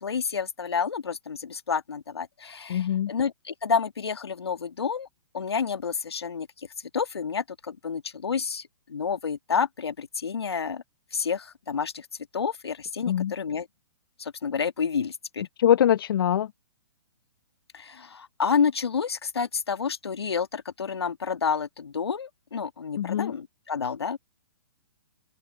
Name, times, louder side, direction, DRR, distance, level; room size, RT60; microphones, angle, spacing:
voice 1, 0.0-5.1 5.3-6.5 6.9-8.6 8.9-10.8 11.1-12.1 12.3-13.7 14.2-15.4 17.7-24.2, left 6 dB, 80° left, 1.6 m, -29 dB
voice 2, 2.7-3.1 13.1-13.3 15.6-16.5 23.0-23.3, left 10 dB, 60° left, 0.8 m, -23 dB
open air
hypercardioid pair, 130°, 13 cm